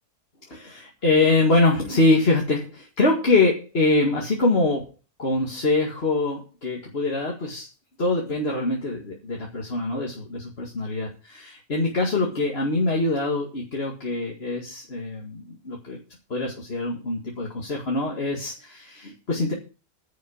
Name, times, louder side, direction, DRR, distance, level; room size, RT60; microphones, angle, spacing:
voice 1, 0.5-4.9 5.2-7.7 8.0-16.0 16.3-19.5, left 2 dB, 35° left, -1 dB, 2.3 m, -24 dB
10.0 x 6.5 x 8.4 m, 0.33 s
omnidirectional pair, 1.8 m